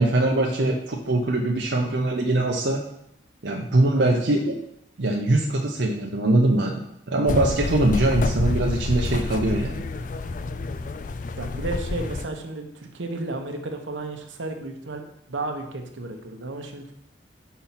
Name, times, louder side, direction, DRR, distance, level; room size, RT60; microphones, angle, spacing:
voice 1, 0.0-2.8 3.4-4.5 5.0-6.8 7.1-9.8, right 2 dB, 70° right, 0 dB, 0.7 m, -22 dB
sound 1, 7.3-12.3, left 3 dB, 45° left, 0.3 m, -28 dB
voice 2, 11.4-15.0 15.3-16.9, right 2 dB, 90° right, 4 dB, 1.0 m, -33 dB
5.7 x 4.2 x 5.8 m, 0.74 s
head